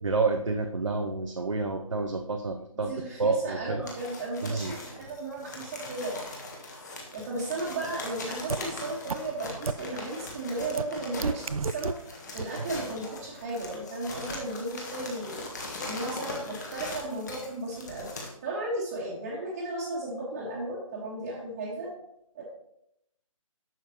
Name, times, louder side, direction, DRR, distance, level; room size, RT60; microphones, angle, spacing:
voice 1, 0.0-2.9 3.2-3.9 4.4-4.8 12.6-12.9, right 3 dB, 60° right, 4 dB, 0.8 m, -29 dB
voice 2, 2.7-6.2 7.1-11.9 12.3-15.4 15.8-18.1 18.4-21.9 22.3-22.4, right 2 dB, 20° right, -7 dB, 1.5 m, -35 dB
sound 1, 3.9-18.3, left 2 dB, 30° left, 1.5 m, -40 dB
sound 2, 8.5-8.6 9.1-9.2 9.7-9.8 10.8-10.9 11.2-11.9 12.4-12.5, right 5 dB, 80° right, 0.4 m, -28 dB
11.0 x 7.3 x 2.9 m, 0.78 s
figure-of-eight pair, 145°, 18 cm